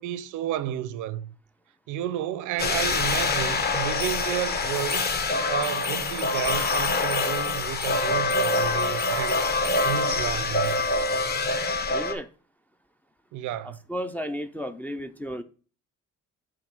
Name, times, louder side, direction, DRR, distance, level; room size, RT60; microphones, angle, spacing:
voice 1, 0.0-1.3 1.9-5.0 5.5-9.5 9.8-11.1 13.3-13.8, right 11 dB, 75° right, 0.6 m, -31 dB
sound 1, 2.6-12.1, left 3 dB, 30° left, 0.8 m, -25 dB
voice 2, 11.9-12.3 13.6-15.4, equal, 5° left, 0.3 m, -33 dB
7.3 x 2.7 x 5.9 m
cardioid pair, 120°, 31 cm